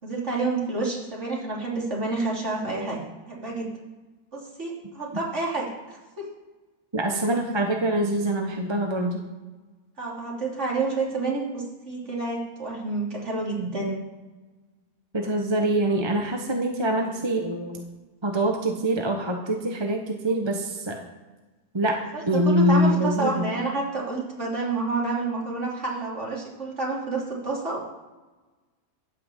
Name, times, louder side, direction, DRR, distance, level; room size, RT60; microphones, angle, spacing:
voice 1, 0.0-3.0 3.3-3.7 4.3-6.3 10.0-14.0 22.1-28.0, right 3 dB, 55° right, -4 dB, 3.7 m, -29 dB
voice 2, 6.9-9.2 15.1-17.8 18.2-21.0 21.7-22.0 22.3-23.5, right 1 dB, 20° right, 3 dB, 1.1 m, -24 dB
16.5 x 5.9 x 7.4 m, 1.2 s
omnidirectional pair, 1.5 m